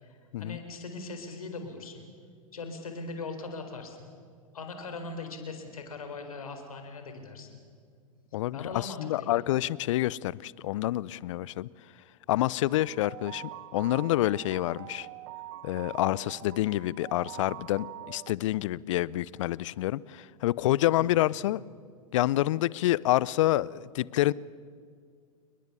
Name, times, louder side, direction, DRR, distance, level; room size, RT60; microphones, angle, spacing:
voice 1, 0.0-2.1 2.5-4.1 4.5-7.6 8.5-9.4, left 3 dB, 75° left, 6 dB, 4.3 m, -40 dB
voice 2, 8.3-11.7 12.3-15.1 15.6-21.6 22.1-24.3, left 15 dB, 60° left, 23 dB, 0.6 m, -28 dB
sound 1, 12.7-18.3, right 17 dB, 50° right, 0.6 m, -44 dB
29.0 x 21.5 x 7.0 m, 2.1 s
figure-of-eight pair, 90°, 18 cm